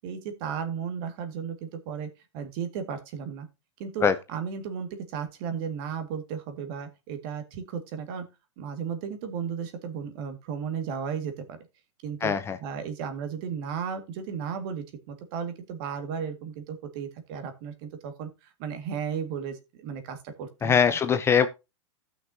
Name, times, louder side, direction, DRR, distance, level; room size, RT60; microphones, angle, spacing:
voice 1, 0.0-2.1 2.3-3.5 3.8-8.3 8.6-11.6 12.0-12.3 12.6-18.3 18.6-20.8, right 7 dB, 50° right, 1.9 m, -34 dB
voice 2, 12.2-12.6 20.6-21.5, left 7 dB, 15° left, 0.5 m, -22 dB
15.5 x 6.0 x 2.7 m
supercardioid pair, 140°, 16 cm